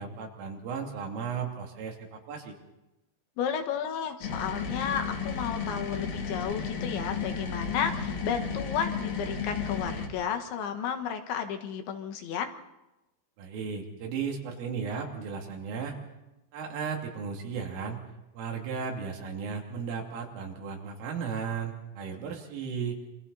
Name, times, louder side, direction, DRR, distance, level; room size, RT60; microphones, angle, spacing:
voice 1, 0.0-2.6 13.4-16.0 16.5-18.0 18.4-23.0, right 6 dB, 90° right, 1 dB, 5.3 m, -35 dB
voice 2, 3.4-12.5, left 8 dB, 70° left, 6 dB, 3.7 m, -32 dB
sound 1, 4.2-10.1, left 5 dB, 55° left, 3.7 m, -33 dB
27.5 x 25.5 x 4.2 m, 0.97 s
omnidirectional pair, 5.6 m